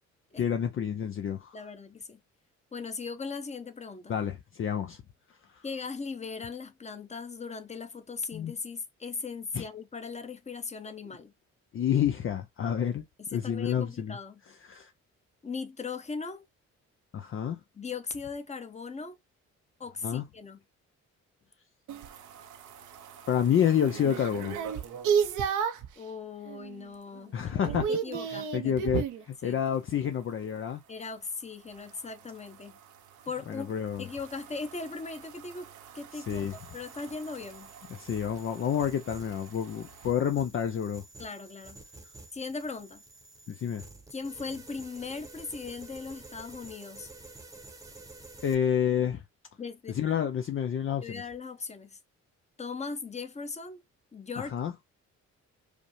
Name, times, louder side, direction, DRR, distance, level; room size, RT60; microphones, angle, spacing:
voice 1, 0.4-1.6 4.1-5.0 5.5-5.6 8.3-8.5 9.5-9.7 11.7-13.0 13.3-14.2 14.6-14.9 17.1-17.6 20.0-20.2 23.3-24.6 27.3-27.9 28.3-30.8 33.5-34.1 36.1-36.5 37.9-41.0 43.5-43.8 48.4-49.2 49.9-51.2 54.5-54.7, left 8 dB, 45° left, 0.5 m, -29 dB
voice 2, 1.5-2.2 2.7-4.2 5.6-11.3 13.3-14.4 15.4-16.4 17.7-19.2 19.8-20.6 26.0-28.7 29.4-29.6 29.9-30.0 30.9-32.8 33.2-35.7 35.9-37.7 41.2-41.8 42.3-43.0 44.1-47.1 49.6-50.0 51.0-52.0 52.6-53.8 54.1-54.6, left 4 dB, 20° left, 0.9 m, -39 dB
sound 1, 21.9-26.0 26.5-26.9 27.1-29.2 31.7-40.1, right 7 dB, 75° right, 0.7 m, -35 dB
sound 2, 36.3-48.6, right 2 dB, 10° right, 1.0 m, -50 dB
5.0 x 2.1 x 3.1 m
cardioid pair, 90°, 30 cm